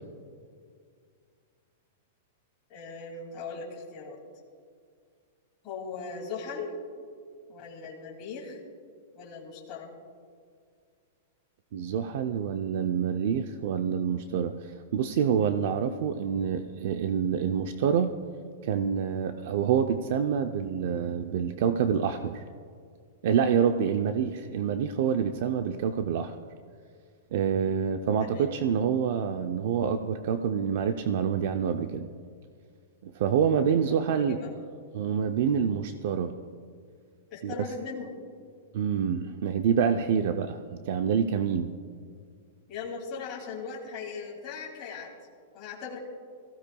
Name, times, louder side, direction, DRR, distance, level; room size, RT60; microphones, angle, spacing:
voice 1, 2.7-4.2 5.6-6.8 7.5-8.6 9.1-9.9 28.2-28.5 33.9-34.5 37.3-38.1 39.2-39.4 42.7-45.1 45.5-46.0, left 4 dB, 25° left, -3 dB, 2.6 m, -39 dB
voice 2, 11.7-14.5 14.9-18.1 18.6-22.4 23.2-26.3 27.3-32.1 33.0-34.4 34.9-36.3 37.4-37.7 38.7-41.7, right 7 dB, 50° right, 7 dB, 0.5 m, -27 dB
23.0 x 15.5 x 2.3 m, 2.1 s
supercardioid pair, 170°, 0 cm